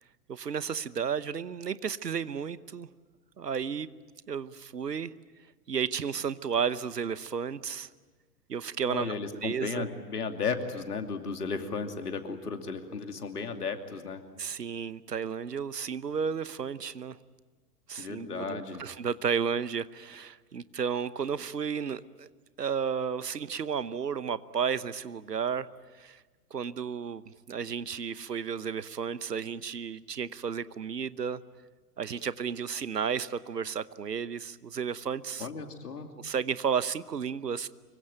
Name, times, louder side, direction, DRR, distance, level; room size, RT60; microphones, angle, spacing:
voice 1, 0.3-2.9 3.4-3.9 4.3-5.1 5.7-7.9 8.5-9.1 9.4-9.9 14.4-17.2 17.9-22.3 22.6-25.7 26.0-26.2 26.5-31.4 32.0-35.5 36.2-37.7, right 7 dB, 80° right, 17 dB, 1.0 m, -33 dB
voice 2, 8.8-14.2 18.0-18.8 35.4-36.1, left 5 dB, 70° left, 6 dB, 2.8 m, -34 dB
25.5 x 23.5 x 9.2 m, 1.3 s
figure-of-eight pair, 110°, 48 cm